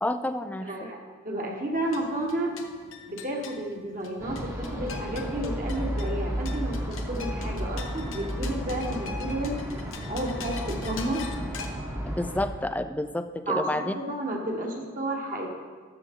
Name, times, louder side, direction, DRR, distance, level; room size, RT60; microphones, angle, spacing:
voice 1, 0.0-0.9 12.1-13.9, left 1 dB, 10° left, 10 dB, 0.3 m, -30 dB
voice 2, 0.6-2.6 3.1-11.2 13.5-15.5, right 1 dB, 40° right, 1 dB, 1.4 m, -32 dB
sound 1, 1.7-11.7, left 5 dB, 80° left, 1.0 m, -43 dB
sound 2, 4.2-12.5, equal, 15° right, 1.0 m, -33 dB
12.5 x 7.0 x 3.7 m, 1.5 s
head